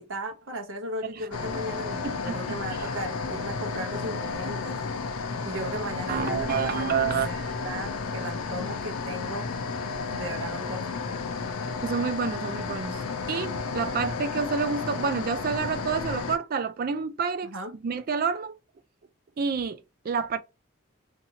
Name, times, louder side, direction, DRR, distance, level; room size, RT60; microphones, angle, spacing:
voice 1, 0.0-4.8 5.4-7.0 7.2-9.5 10.1-11.1 17.4-17.8, right 1 dB, 65° right, 0.9 m, -36 dB
sound 1, 1.3-16.4, left 4 dB, 90° left, 0.5 m, -32 dB
voice 2, 2.0-2.6 6.1-7.3 11.8-17.5 17.8-18.6 19.4-20.4, right 5 dB, 45° right, 0.3 m, -29 dB
2.7 x 2.6 x 2.7 m
head